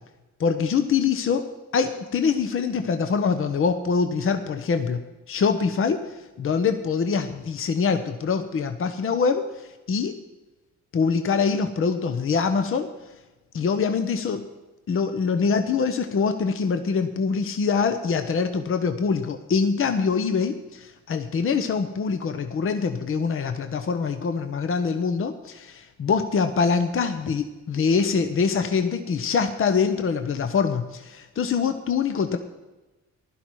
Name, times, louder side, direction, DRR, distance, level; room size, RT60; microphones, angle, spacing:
voice 1, 0.4-1.5 1.7-5.0 5.3-6.0 6.4-10.2 10.9-12.9 13.5-14.5 14.9-32.4, left 5 dB, 45° left, 8 dB, 0.9 m, -24 dB
15.5 x 11.5 x 4.7 m, 1.1 s
cardioid pair, 90°, 30 cm